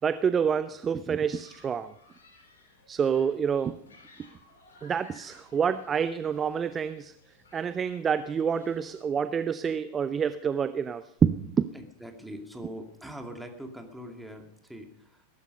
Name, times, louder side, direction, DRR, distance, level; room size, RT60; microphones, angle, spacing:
voice 1, 0.0-1.9 2.9-3.8 4.8-7.1 7.5-11.7, right 7 dB, 20° right, 14 dB, 0.6 m, -27 dB
Human group actions, 1.3-9.0, left 2 dB, 65° left, 4.3 m, -58 dB
voice 2, 11.7-15.3, equal, ahead, 3 dB, 2.5 m, -42 dB
21.0 x 12.0 x 5.4 m, 0.73 s
figure-of-eight pair, 90°, 0 cm